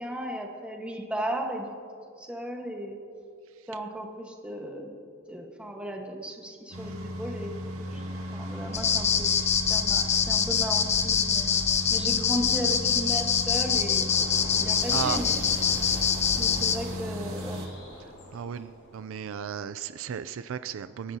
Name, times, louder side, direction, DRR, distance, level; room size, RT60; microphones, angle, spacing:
voice 1, 0.0-1.7 2.2-3.0 3.7-4.9 5.3-8.0 8.3-9.4 9.7-11.5 11.9-14.3 14.5-15.5 16.4-17.6, equal, 5° right, 1 dB, 1.4 m, -35 dB
sound 1, 6.7-17.7, equal, 85° right, 1.8 m, -36 dB
sound 2, 8.7-16.8, left 7 dB, 30° left, 0.6 m, -25 dB
sound 3, 14.0-19.2, left 1 dB, 85° left, 4.1 m, -44 dB
voice 2, 18.3-21.2, right 7 dB, 65° right, 13 dB, 0.4 m, -34 dB
26.5 x 10.5 x 2.8 m, 2.3 s
head